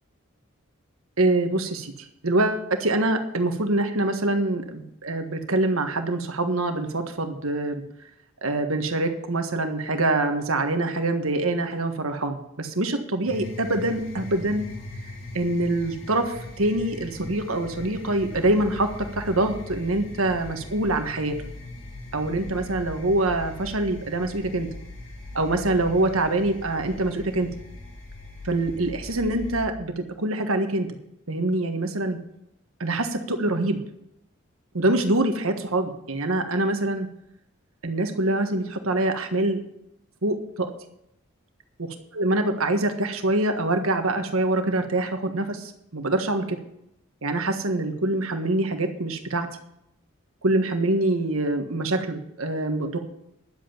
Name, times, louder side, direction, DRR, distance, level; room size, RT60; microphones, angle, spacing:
voice 1, 1.2-1.9 2.2-7.8 8.4-14.7 15.3-18.9 19.2-21.3 22.1-24.7 25.3-27.5 28.4-30.9 31.3-32.2 32.8-33.8 34.7-37.1 37.8-39.6 40.2-40.7 41.8-46.4 47.2-49.5 50.4-53.0, right 2 dB, 85° right, 6 dB, 1.5 m, -25 dB
sound 1, 13.3-29.7, left 2 dB, 70° left, 3.4 m, -40 dB
11.5 x 8.1 x 7.1 m, 0.80 s
head